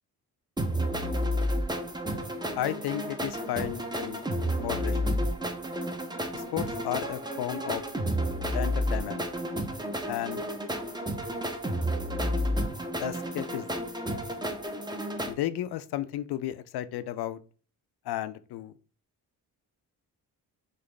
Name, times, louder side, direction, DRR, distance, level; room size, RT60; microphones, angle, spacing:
sound 1, 0.6-15.3, equal, 10° right, 0.6 m, -31 dB
voice 1, 2.6-4.3 4.5-5.2 6.3-7.8 8.5-9.3 10.1-10.4 13.0-13.7 15.3-17.4 18.1-18.7, left 12 dB, 65° left, 13 dB, 0.5 m, -33 dB
4.0 x 2.5 x 3.2 m, 0.38 s
supercardioid pair, 55°, 42 cm